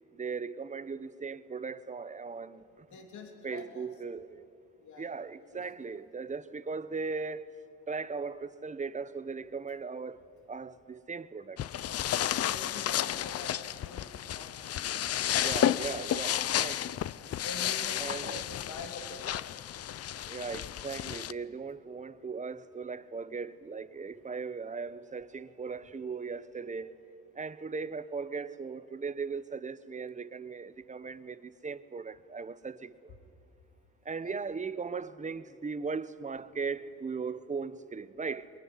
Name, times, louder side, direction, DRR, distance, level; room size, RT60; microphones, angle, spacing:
voice 1, 0.1-2.9 3.4-4.4 5.0-7.5 7.9-10.2 10.5-11.6 15.4-17.0 18.0-18.4 20.3-27.0 27.3-33.1 34.0-38.5, right 5 dB, 25° right, 1.1 m, -38 dB
voice 2, 2.9-3.9 4.8-5.6 5.9-6.0 12.2-14.0 14.3-14.8 15.8-16.7 17.0-19.3 34.2-34.3, left 4 dB, 75° left, 3.4 m, -46 dB
sound 1, 11.6-21.3, left 11 dB, 55° left, 0.6 m, -32 dB
23.0 x 22.5 x 9.9 m
cardioid pair, 90°, 30 cm